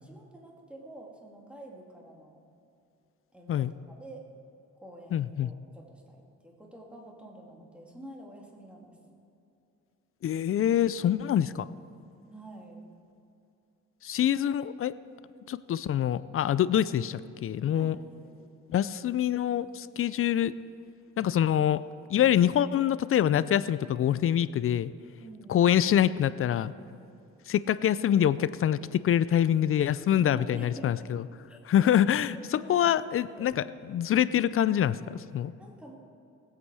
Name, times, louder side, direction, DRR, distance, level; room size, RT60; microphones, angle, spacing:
voice 1, 0.0-2.5 3.3-4.2 4.8-9.0 12.3-12.9 17.7-18.4 25.2-25.7 30.2-31.1 31.5-32.0 32.6-33.6 35.6-36.0, right 1 dB, 5° right, -1 dB, 2.5 m, -47 dB
voice 2, 5.1-5.5 10.2-11.7 14.0-15.0 15.5-18.0 18.7-20.5 21.2-21.8 22.1-24.9 25.5-26.7 27.5-31.2 31.7-35.5, left 10 dB, 45° left, 16 dB, 0.4 m, -25 dB
19.5 x 8.4 x 4.8 m, 2.6 s
cardioid pair, 90°, 30 cm